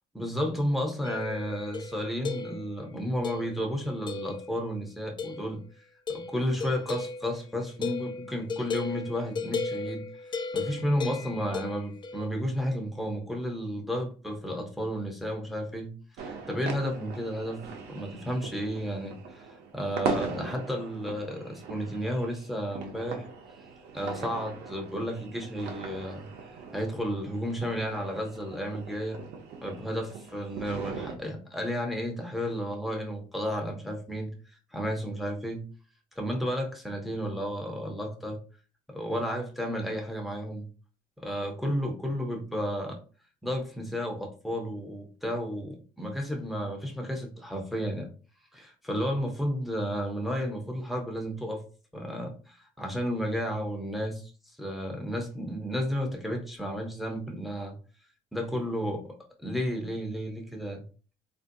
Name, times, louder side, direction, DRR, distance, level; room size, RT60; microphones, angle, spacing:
voice 1, 0.1-5.6 6.1-10.0 10.5-19.5 19.7-23.3 23.9-26.3 26.7-29.2 29.6-34.3 34.7-35.7 36.2-38.4 38.9-40.7 41.2-43.0 43.4-48.1 48.5-51.6 51.9-54.2 54.6-57.8 58.3-59.1 59.4-60.8, equal, ahead, 1 dB, 0.8 m, -32 dB
sound 1, 1.0-2.8 3.2-3.7 4.1-4.7 5.2-5.6 6.1-12.3, left 4 dB, 30° left, 0.3 m, -36 dB
sound 2, 16.2-31.2, right 5 dB, 80° right, 0.8 m, -40 dB
3.6 x 2.6 x 2.6 m, 0.37 s
cardioid pair, 110°, 17 cm